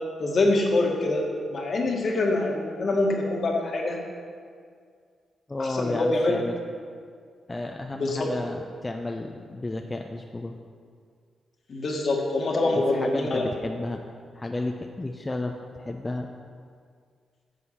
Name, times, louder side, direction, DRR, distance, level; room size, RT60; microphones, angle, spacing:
voice 1, 0.2-4.0 5.6-6.3 7.9-8.3 11.7-13.4, left 2 dB, 55° left, 0 dB, 1.9 m, -25 dB
voice 2, 5.5-6.5 7.5-10.6 12.6-14.0 14.3-16.3, left 2 dB, 25° left, 3 dB, 0.8 m, -32 dB
9.6 x 6.8 x 5.8 m, 2.1 s
supercardioid pair, 45°, 0 cm